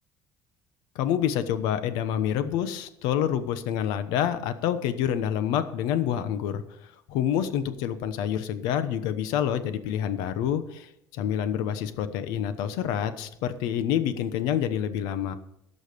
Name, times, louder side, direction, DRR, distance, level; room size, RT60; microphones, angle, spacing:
voice 1, 0.9-15.4, left 9 dB, 85° left, 12 dB, 1.0 m, -27 dB
16.5 x 6.4 x 5.2 m, 0.79 s
cardioid pair, 165°, 7 cm